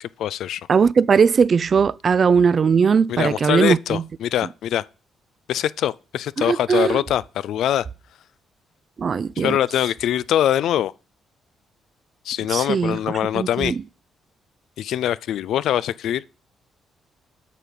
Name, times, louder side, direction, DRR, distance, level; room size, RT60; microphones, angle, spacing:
voice 1, 0.0-0.7 3.1-4.9 5.5-7.9 9.4-10.9 12.2-13.8 14.8-16.2, left 11 dB, 75° left, 0.3 m, -23 dB
voice 2, 0.7-4.0 6.5-7.0 9.0-9.6 12.5-13.0 13.3-13.8, right 6 dB, 45° right, 0.4 m, -19 dB
8.3 x 5.3 x 5.9 m
cardioid pair, 90°, 0 cm